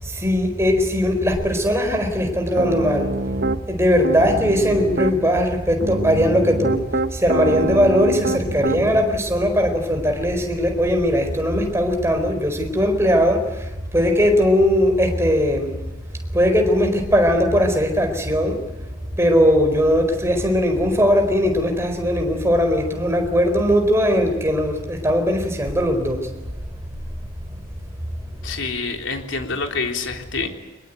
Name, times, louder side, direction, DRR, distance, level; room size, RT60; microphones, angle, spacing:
voice 1, 0.0-3.1 3.7-6.8 7.1-15.7 16.3-18.6 19.0-26.3, equal, 15° right, 4 dB, 4.4 m, -19 dB
Piano, 2.6-3.6 4.0-5.2 5.8-9.0, right 2 dB, 50° right, 1.1 m, -25 dB
voice 2, 28.4-30.5, left 4 dB, 65° left, 4 dB, 3.6 m, -27 dB
24.0 x 22.0 x 9.3 m, 1.1 s
head